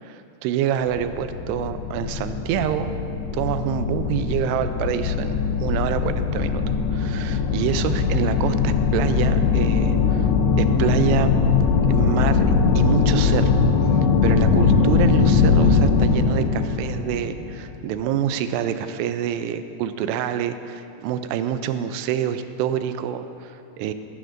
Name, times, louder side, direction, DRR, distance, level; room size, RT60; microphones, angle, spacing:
voice 1, 0.0-2.9 3.3-10.3 10.6-11.4 11.9-12.4 12.8-13.6 14.2-23.9, right 9 dB, 85° right, 10 dB, 2.7 m, -26 dB
sound 1, 0.9-17.9, left 5 dB, 90° left, 2.8 m, -21 dB
14.5 x 13.5 x 2.6 m, 2.6 s
omnidirectional pair, 4.7 m